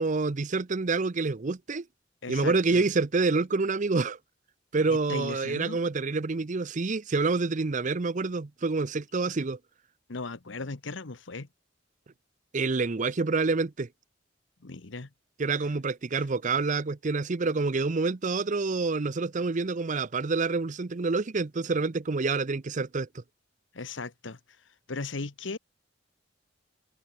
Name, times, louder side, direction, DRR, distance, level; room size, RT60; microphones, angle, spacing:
voice 1, 0.0-1.8 2.3-4.2 4.7-9.6 12.5-13.9 15.4-23.2, right 3 dB, 40° right, 0.6 m, -27 dB
voice 2, 2.2-2.8 4.9-5.8 10.1-11.5 14.6-15.1 16.2-16.3 23.7-24.4 24.9-25.6, left 3 dB, 80° left, 1.2 m, -37 dB
open air
head